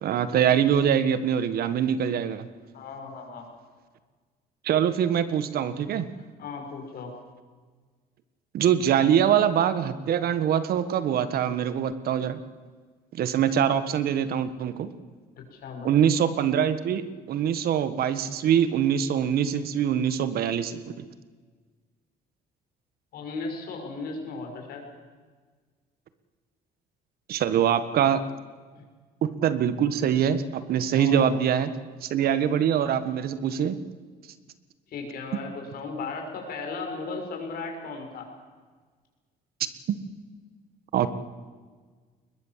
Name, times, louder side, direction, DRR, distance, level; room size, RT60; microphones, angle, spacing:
voice 1, 0.0-2.4 4.6-6.1 8.5-12.4 13.1-14.9 15.8-20.8 27.3-28.2 29.2-31.7 32.0-33.8 39.9-40.0 40.9-41.1, right 9 dB, 65° right, 12 dB, 1.6 m, -24 dB
voice 2, 2.7-3.4 6.4-7.1 15.4-15.9 23.1-24.8 28.7-28.8 31.0-31.3 34.9-38.3, left 4 dB, 65° left, 3 dB, 6.2 m, -36 dB
21.5 x 21.0 x 7.6 m, 1.5 s
cardioid pair, 110°, 17 cm